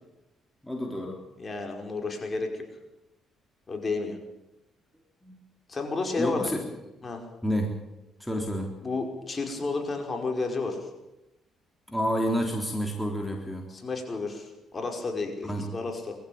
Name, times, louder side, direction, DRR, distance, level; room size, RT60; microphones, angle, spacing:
voice 1, 0.6-1.2 5.2-5.4 6.2-6.6 7.4-7.7 8.2-8.7 11.9-13.7 15.4-15.7, equal, 5° left, 1 dB, 3.6 m, -29 dB
voice 2, 1.4-2.7 3.7-4.2 5.7-6.6 7.0-7.2 8.8-10.9 13.7-16.2, left 3 dB, 35° left, 3 dB, 5.3 m, -31 dB
22.0 x 15.0 x 8.8 m, 0.94 s
cardioid pair, 80°, 0 cm